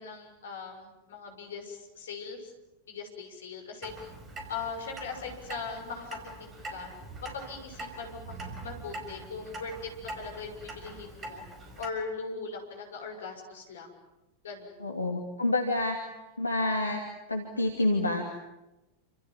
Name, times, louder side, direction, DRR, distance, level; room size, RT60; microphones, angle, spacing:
voice 1, 0.0-2.5 2.9-3.9 4.5-6.9 7.2-11.4 11.8-13.9 14.4-14.8, left 4 dB, 65° left, 4 dB, 6.2 m, -40 dB
Clock, 3.8-11.9, right 2 dB, 20° right, 5.5 m, -43 dB
voice 2, 14.8-16.0 16.4-17.0 17.3-18.2, left 2 dB, 80° left, 2 dB, 2.8 m, -28 dB
29.5 x 27.0 x 7.5 m, 1.0 s
figure-of-eight pair, 90°, 0 cm